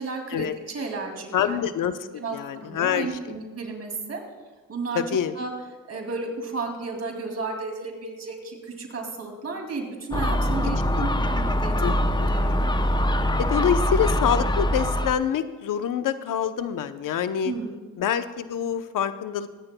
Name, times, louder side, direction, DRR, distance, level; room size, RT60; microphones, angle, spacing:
voice 1, 0.0-1.6 2.2-4.2 4.7-5.0 5.4-5.5 5.9-12.6 17.4-17.7, right 3 dB, 45° right, 2 dB, 2.6 m, -33 dB
voice 2, 1.3-3.3 4.9-5.4 10.9-11.1 11.8-12.3 13.4-17.5 18.0-19.5, left 8 dB, 65° left, 10 dB, 0.8 m, -26 dB
Gull seagull, 10.1-15.1, equal, 15° left, 0.7 m, -23 dB
23.0 x 9.7 x 2.2 m, 1.3 s
cardioid pair, 80°, 34 cm